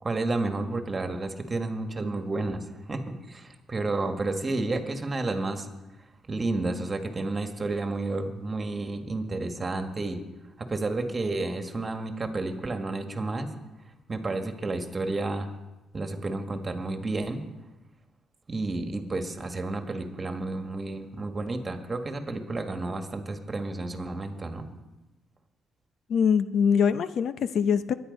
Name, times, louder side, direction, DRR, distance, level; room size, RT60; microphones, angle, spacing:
voice 1, 0.0-5.7 6.3-10.2 10.6-13.5 14.1-15.5 15.9-17.4 18.5-24.6, right 2 dB, 30° right, 6 dB, 1.8 m, -31 dB
voice 2, 26.1-27.9, left 7 dB, 65° left, 12 dB, 0.7 m, -23 dB
22.5 x 10.0 x 5.4 m, 1.1 s
cardioid pair, 90°, 0 cm